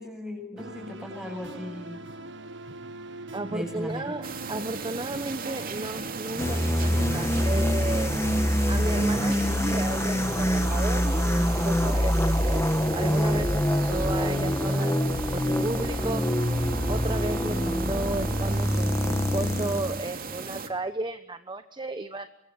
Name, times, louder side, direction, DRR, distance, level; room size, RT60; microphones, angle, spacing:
voice 1, 0.0-2.0 3.5-4.2, left 1 dB, 5° right, 4 dB, 7.8 m, -37 dB
sound 1, 0.6-7.5, right 2 dB, 60° right, 1.8 m, -42 dB
voice 2, 3.3-8.2 8.7-12.6 12.9-16.2 16.9-22.3, right 2 dB, 20° right, 10 dB, 1.1 m, -34 dB
sound 2, 4.2-20.7, right 4 dB, 45° right, 2.7 m, -37 dB
sound 3, 6.4-20.0, equal, 15° left, 1.6 m, -25 dB
24.0 x 23.5 x 9.7 m, 0.72 s
head